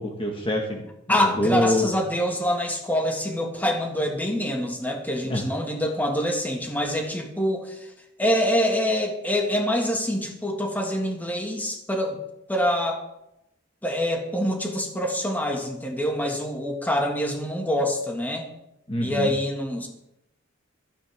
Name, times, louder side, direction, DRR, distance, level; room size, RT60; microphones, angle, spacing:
voice 1, 0.0-1.9 5.2-5.4 18.9-19.3, left 1 dB, 25° left, 1 dB, 1.6 m, -26 dB
voice 2, 1.1-7.9 8.2-12.2 12.5-13.0 13.8-18.5 19.0-19.9, equal, 10° left, 1 dB, 2.0 m, -25 dB
16.0 x 14.0 x 3.6 m, 0.86 s
head